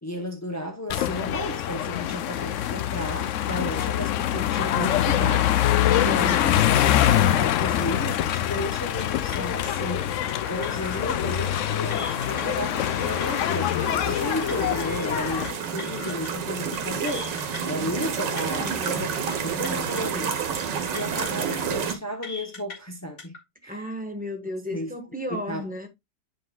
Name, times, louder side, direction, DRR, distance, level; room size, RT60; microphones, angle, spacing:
voice 1, 0.0-6.5 6.8-13.7 14.0-17.3 17.6-19.1 19.4-20.4 20.9-23.4 23.6-23.9 24.7-24.9 25.3-25.6, left 1 dB, 25° left, 0.3 m, -33 dB
sound 1, 0.9-15.5, left 11 dB, 80° left, 0.6 m, -24 dB
sound 2, 9.0-9.1 9.3-9.7 10.3-11.1 11.4-11.6 11.9-12.4 12.9-13.7 14.0-14.2 14.5-14.9 15.4-16.3 16.6-16.8 17.1-17.6 18.0-18.9 19.2-19.4 19.6-20.0 20.6-21.5 21.7-21.9 22.2-22.8 23.2-23.4, left 4 dB, 50° left, 2.3 m, -40 dB
sound 3, 9.8-21.9, right 6 dB, 80° right, 1.8 m, -31 dB
voice 2, 18.6-19.0 23.7-25.9, left 1 dB, 5° right, 0.9 m, -34 dB
9.4 x 5.3 x 2.3 m
omnidirectional pair, 1.9 m